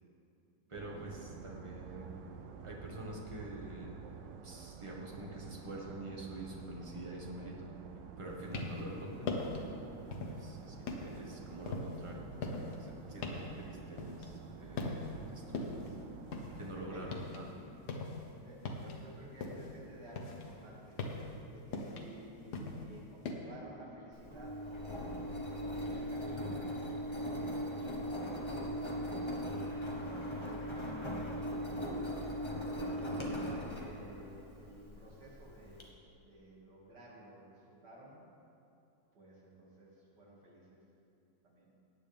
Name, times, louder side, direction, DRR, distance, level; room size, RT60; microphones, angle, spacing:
voice 1, 0.7-2.2 2.6-4.0 4.4-7.7 8.2-9.3 10.2-15.0 15.3-15.9 16.6-17.6 29.1-29.3, right 1 dB, 20° right, -2 dB, 1.2 m, -46 dB
sound 1, 0.7-17.3, right 6 dB, 85° right, 1.4 m, -50 dB
sound 2, 8.3-8.9 9.2-9.7 10.1-10.5 10.9-14.5 14.8-15.2 15.5-17.4 17.7-19.8 20.1-23.3, left 3 dB, 65° left, 1.5 m, -40 dB
voice 2, 16.7-17.3 18.4-21.1 21.5-24.7 25.7-26.7 27.1-28.0 29.2-32.1 32.7-35.9 36.2-38.2 39.1-40.8 41.4-41.7, right 1 dB, 65° right, -5 dB, 2.8 m, -54 dB
Engine, 24.1-35.8, equal, 20° left, 1.0 m, -39 dB
17.5 x 9.0 x 3.4 m, 2.6 s
omnidirectional pair, 1.9 m